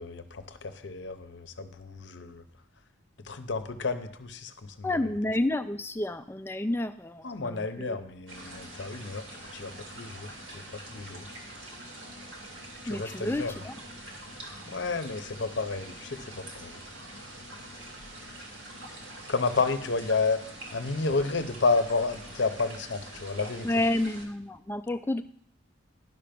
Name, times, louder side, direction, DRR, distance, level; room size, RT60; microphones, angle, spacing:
voice 1, 0.0-2.4 3.2-5.1 7.2-11.3 12.8-13.6 14.3-16.8 19.3-20.4 20.7-23.9, left 3 dB, 65° left, 9 dB, 0.7 m, -31 dB
voice 2, 4.8-8.0 12.9-13.7 23.6-25.2, left 1 dB, 10° left, 9 dB, 0.3 m, -30 dB
sound 1, 8.3-24.2, right 1 dB, 85° right, 2.3 m, -44 dB
11.0 x 5.7 x 5.1 m, 0.66 s
head